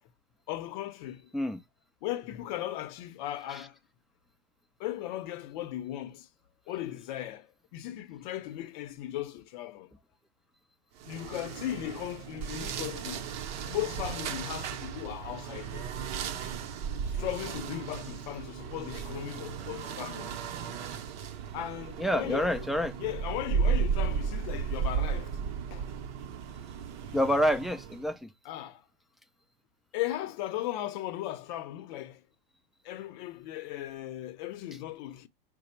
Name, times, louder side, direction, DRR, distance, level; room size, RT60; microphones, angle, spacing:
voice 1, 0.5-1.3 2.0-3.8 4.8-6.3 6.7-9.9 11.0-13.3 13.7-15.9 17.1-20.4 21.5-22.6 23.0-25.4 25.7-25.9 28.4-28.8 29.9-32.2 32.8-35.3, left 13 dB, 55° left, 0.7 m, -37 dB
sound 1, 11.0-28.1, right 6 dB, 50° right, 0.7 m, -35 dB
voice 2, 22.0-22.9 27.1-28.3, equal, ahead, 0.3 m, -28 dB
4.8 x 2.1 x 4.2 m
hypercardioid pair, 105°, 29 cm